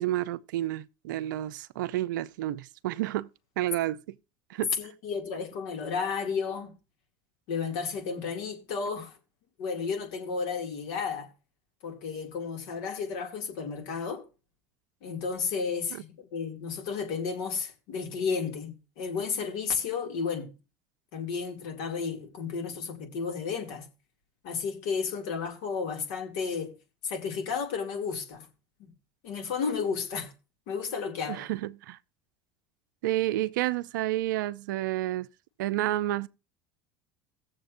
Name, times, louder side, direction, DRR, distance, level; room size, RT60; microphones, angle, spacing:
voice 1, 0.0-3.3 3.6-4.2 4.5-4.7 31.3-32.0 33.0-35.3 35.6-36.3, right 14 dB, 80° right, 0.5 m, -30 dB
voice 2, 4.8-6.8 7.5-9.2 9.6-11.3 11.8-14.2 15.0-20.5 21.1-23.9 24.4-26.7 27.0-28.5 28.8-28.9 29.2-30.3 30.7-31.5, left 5 dB, 70° left, 2.4 m, -32 dB
17.5 x 7.2 x 2.6 m
hypercardioid pair, 90°, 10 cm